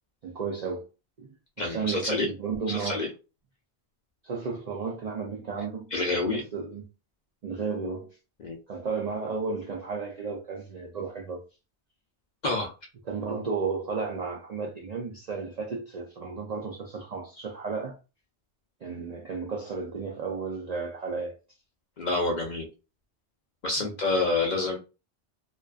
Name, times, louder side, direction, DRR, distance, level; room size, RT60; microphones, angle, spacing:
voice 1, 0.2-0.9 1.2-3.1 4.2-5.9 6.3-6.8 7.4-8.1 8.7-11.4 13.1-18.0 18.8-21.3 23.8-23.9, right 5 dB, 60° right, 0.4 m, -33 dB
voice 2, 1.6-2.3 2.7-3.1 5.9-6.4 8.4-8.6 12.4-12.7 22.0-22.7 23.6-24.8, left 3 dB, 55° left, 0.5 m, -27 dB
2.4 x 2.2 x 2.3 m
omnidirectional pair, 1.2 m